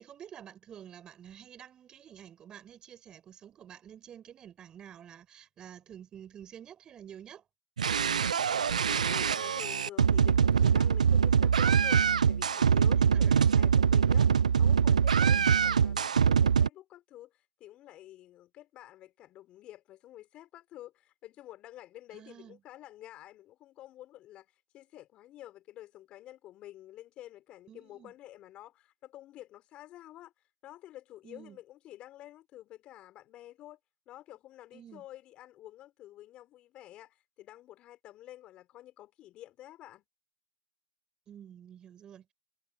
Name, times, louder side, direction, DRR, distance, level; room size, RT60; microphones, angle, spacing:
voice 1, 0.0-7.5 13.0-13.7 15.2-15.5 22.1-22.6 27.7-28.1 31.2-31.6 34.7-35.0 41.3-42.3, right 9 dB, 20° right, 7.7 m, -50 dB
sound 1, 7.8-16.7, right 7 dB, 85° right, 0.4 m, -24 dB
voice 2, 8.6-14.3 14.6-17.3 17.6-30.3 30.6-33.8 34.1-40.0, left 14 dB, 30° left, 5.9 m, -50 dB
hypercardioid pair, 130°, 4 cm